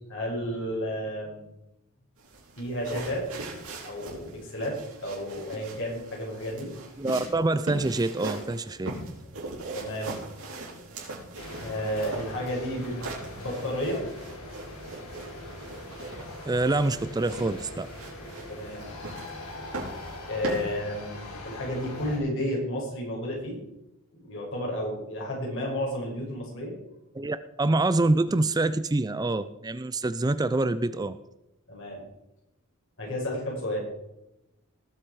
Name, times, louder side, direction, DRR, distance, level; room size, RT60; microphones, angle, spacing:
voice 1, 0.1-1.5 2.6-3.3 3.8-6.7 9.7-10.2 11.6-13.0 13.3-14.0 18.5-18.9 20.3-23.6 24.1-26.7 31.7-32.0 33.0-33.8, equal, 60° left, -2 dB, 5.9 m, -32 dB
sound 1, 2.2-20.6, right 2 dB, 80° right, 4.7 m, -40 dB
voice 2, 7.0-8.9 16.4-17.9 27.2-31.2, right 2 dB, 20° right, 12 dB, 0.4 m, -26 dB
sound 2, 11.4-22.2, left 1 dB, 85° left, 3.8 m, -42 dB
19.5 x 7.8 x 4.8 m, 0.88 s
head